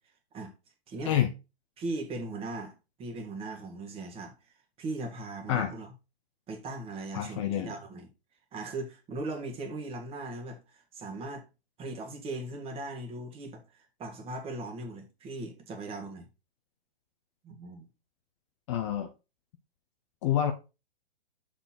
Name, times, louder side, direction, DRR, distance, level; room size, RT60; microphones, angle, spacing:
voice 1, 1.8-2.7 3.0-4.3 4.8-5.9 6.5-8.1 8.5-11.4 11.8-16.3 17.4-17.9, right 2 dB, 20° right, 1.6 m, -38 dB
voice 2, 7.1-7.7 18.7-19.1 20.2-20.5, left 10 dB, 30° left, 0.6 m, -27 dB
6.8 x 4.2 x 4.3 m
hypercardioid pair, 135°, 32 cm